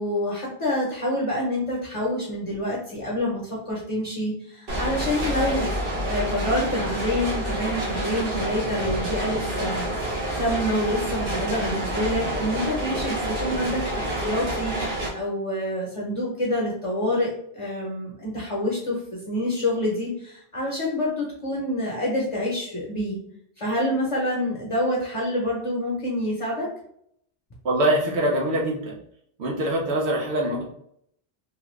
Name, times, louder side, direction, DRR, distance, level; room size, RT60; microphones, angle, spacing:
voice 1, 0.0-5.7 6.0-23.2 23.6-26.7, left 1 dB, 35° left, -4 dB, 0.8 m, -27 dB
sound 1, 4.7-15.1, right 1 dB, 55° right, 1.1 m, -28 dB
voice 2, 27.6-29.0 29.4-30.7, right 1 dB, 80° right, -1 dB, 1.1 m, -23 dB
3.1 x 2.4 x 3.1 m, 0.70 s
omnidirectional pair, 1.1 m